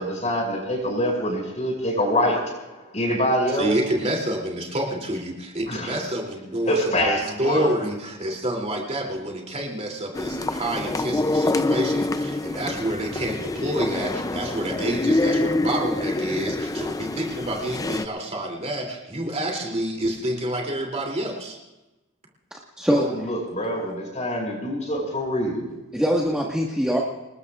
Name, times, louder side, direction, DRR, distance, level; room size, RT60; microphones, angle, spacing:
voice 1, 0.0-3.7 5.7-6.0 6.7-7.7 23.0-25.7, equal, 35° left, 0 dB, 5.8 m, -25 dB
voice 2, 3.5-21.6, right 1 dB, 30° right, 1 dB, 2.9 m, -28 dB
sound 1, 10.1-18.1, left 2 dB, 15° left, 0.5 m, -26 dB
voice 3, 22.5-23.3 25.9-27.0, equal, 5° right, -3 dB, 1.6 m, -23 dB
28.0 x 20.0 x 2.5 m, 1.0 s
head